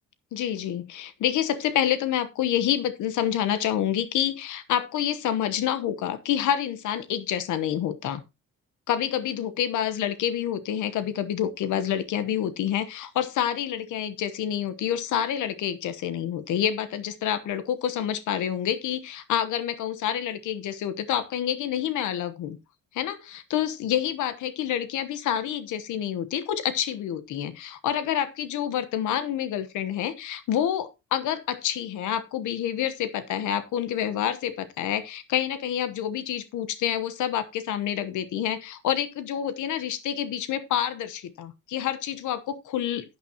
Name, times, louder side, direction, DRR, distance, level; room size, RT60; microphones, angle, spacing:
voice 1, 0.3-8.2 8.9-22.6 22.9-43.2, left 10 dB, 75° left, 1.1 m, -28 dB
11.5 x 8.9 x 2.9 m
cardioid pair, 180°, 31 cm